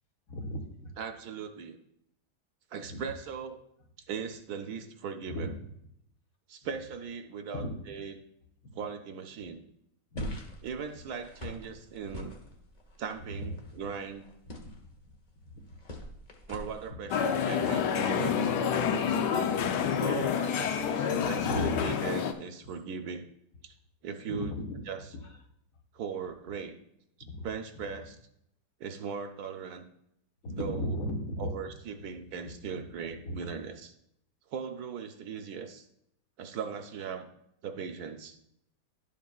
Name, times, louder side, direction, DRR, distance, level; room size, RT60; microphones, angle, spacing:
voice 1, 0.3-0.9 2.9-3.0 5.3-5.7 7.5-7.8 8.6-8.7 10.1-10.4 13.2-13.5 13.8-13.9 15.5-15.6 16.9-17.0 21.4-21.9 24.3-24.8 25.1-25.3 27.2-27.5 27.8-28.0 30.4-31.5 32.4-32.8 33.2-33.5, left 1 dB, 55° left, 3 dB, 1.5 m, -36 dB
voice 2, 1.0-1.8 2.7-3.6 4.1-5.5 6.5-8.1 8.7-9.6 10.6-12.3 13.0-14.2 16.5-19.2 19.5-19.6 20.0-23.3 23.6-23.7 24.0-24.5 24.9-25.0 25.9-26.8 27.4-28.2 28.8-29.9 30.5-30.9 31.4-33.9 34.5-35.9 36.4-37.3 37.6-38.4, right 6 dB, 70° right, 7 dB, 1.1 m, -39 dB
sound 1, 10.2-16.9, left 1 dB, 30° left, 0.8 m, -45 dB
sound 2, 17.1-22.3, left 7 dB, 80° left, 1.3 m, -28 dB
11.0 x 7.3 x 2.3 m, 0.77 s
omnidirectional pair, 1.8 m